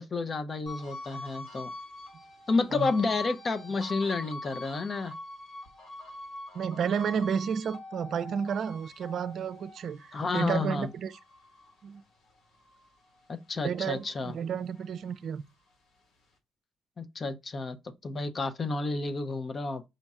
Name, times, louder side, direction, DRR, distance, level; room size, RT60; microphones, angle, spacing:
voice 1, 0.0-1.7 2.5-5.2 10.1-10.9 13.3-14.3 17.0-19.8, left 3 dB, 40° left, 0.7 m, -31 dB
sound 1, 0.7-13.3 13.7-15.4, left 2 dB, 75° left, 1.7 m, -44 dB
voice 2, 6.5-11.1 11.8-12.0 13.6-15.4, right 7 dB, 65° right, 0.5 m, -31 dB
5.2 x 2.3 x 4.1 m
cardioid pair, 90°, 0 cm